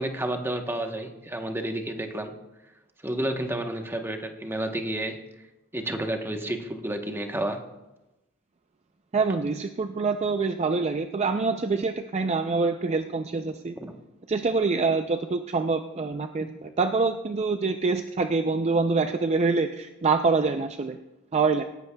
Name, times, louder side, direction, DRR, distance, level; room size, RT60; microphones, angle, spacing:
voice 1, 0.0-2.3 3.0-5.2 5.7-7.6 13.8-13.9, right 1 dB, 10° right, 4 dB, 1.0 m, -30 dB
voice 2, 9.1-13.8 14.3-21.0 21.3-21.6, right 4 dB, 30° right, 7 dB, 0.4 m, -25 dB
18.0 x 14.5 x 2.3 m, 0.98 s
head